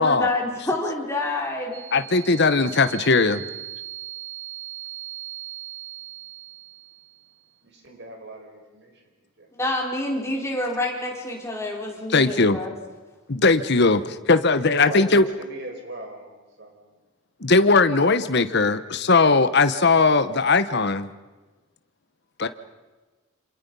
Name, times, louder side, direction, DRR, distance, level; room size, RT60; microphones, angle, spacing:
voice 1, 0.0-1.9 9.5-12.7, left 2 dB, 15° left, -1 dB, 4.2 m, -27 dB
sound 1, 1.7-7.4, right 15 dB, 90° right, 1.4 m, -39 dB
voice 2, 1.9-3.4 12.1-12.6 13.3-15.2 17.4-21.1 22.4-22.5, left 3 dB, 50° left, 11 dB, 1.0 m, -19 dB
voice 3, 7.6-9.0 9.4-9.5 14.5-16.3 16.6-16.9, right 1 dB, 55° right, 3 dB, 4.9 m, -38 dB
28.0 x 26.5 x 5.5 m, 1.2 s
head